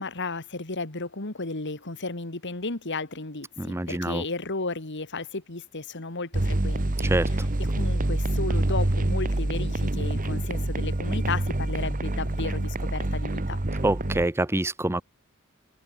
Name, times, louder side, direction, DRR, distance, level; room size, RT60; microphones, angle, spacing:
voice 1, 0.0-13.6, left 3 dB, 60° left, 2.4 m, -34 dB
voice 2, 3.6-4.2 7.0-7.3 13.8-15.0, right 1 dB, 10° right, 0.7 m, -26 dB
sound 1, 6.3-14.3, right 1 dB, 40° right, 1.3 m, -26 dB
head